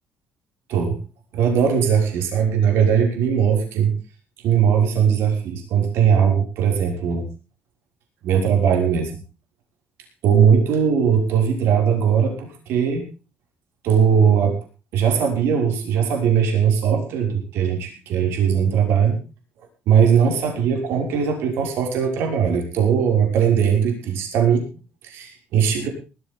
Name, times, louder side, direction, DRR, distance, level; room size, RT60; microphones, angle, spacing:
voice 1, 1.3-3.9 4.4-7.3 8.2-9.1 10.2-13.1 13.8-14.6 14.9-19.2 19.9-24.6 25.0-25.9, right 7 dB, 75° right, 2 dB, 6.0 m, -19 dB
19.5 x 14.0 x 3.8 m, 0.34 s
cardioid pair, 175°, 4 cm